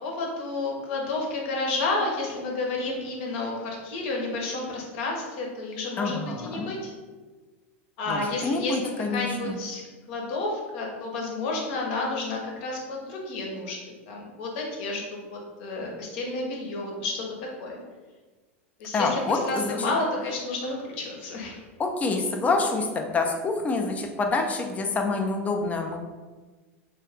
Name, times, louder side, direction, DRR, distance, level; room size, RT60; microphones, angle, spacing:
voice 1, 0.0-6.9 8.0-9.8 10.1-13.8 14.1-17.8 18.8-21.6, left 2 dB, 60° left, -1 dB, 0.8 m, -31 dB
voice 2, 6.0-6.7 8.1-9.6 18.9-19.9 21.8-26.0, left 3 dB, 20° left, 4 dB, 0.4 m, -27 dB
2.4 x 2.2 x 3.3 m, 1.3 s
hypercardioid pair, 100°, 7 cm